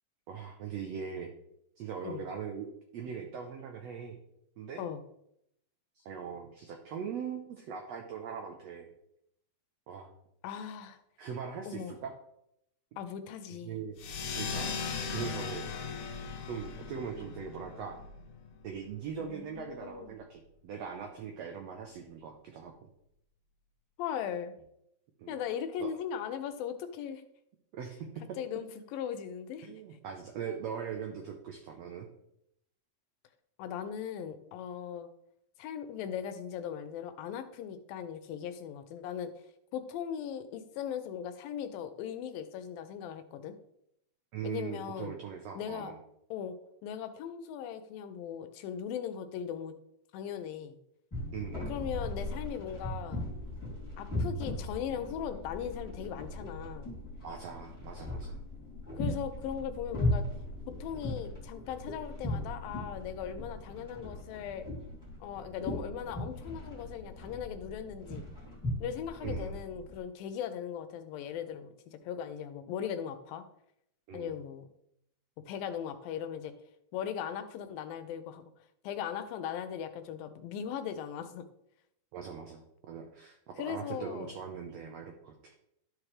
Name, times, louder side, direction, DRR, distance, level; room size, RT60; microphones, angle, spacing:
voice 1, 0.3-1.3 1.8-4.2 4.6-4.8 5.9-8.9 9.9-10.1 11.2-12.1 13.7-14.8 15.1-15.7 16.5-18.0 18.6-22.7 25.2-25.4 25.8-25.9 27.7-28.4 29.6-32.1 44.3-46.0 51.3-51.7 57.2-58.4 69.2-69.6 74.1-74.3 82.1-85.5, right 7 dB, 90° right, 3 dB, 1.4 m, -41 dB
voice 2, 10.4-11.0 11.7-11.9 13.0-13.8 19.2-20.2 24.0-24.5 25.3-27.2 28.4-29.8 30.5-30.6 33.6-35.1 35.6-39.3 39.7-43.5 44.4-45.1 45.6-45.9 46.3-46.6 46.8-49.7 50.1-50.8 51.7-53.3 54.0-56.9 59.0-60.2 60.8-64.7 65.2-68.2 68.8-71.7 72.0-73.4 74.1-74.7 75.5-76.5 76.9-78.4 78.8-81.4 83.6-84.3, left 8 dB, 85° left, 10 dB, 2.5 m, -38 dB
sound 1, 14.0-19.1, left 5 dB, 65° left, 1.8 m, -38 dB
sound 2, 51.1-70.0, left 1 dB, 5° left, 2.1 m, -38 dB
12.5 x 4.9 x 3.3 m, 0.77 s
omnidirectional pair, 4.0 m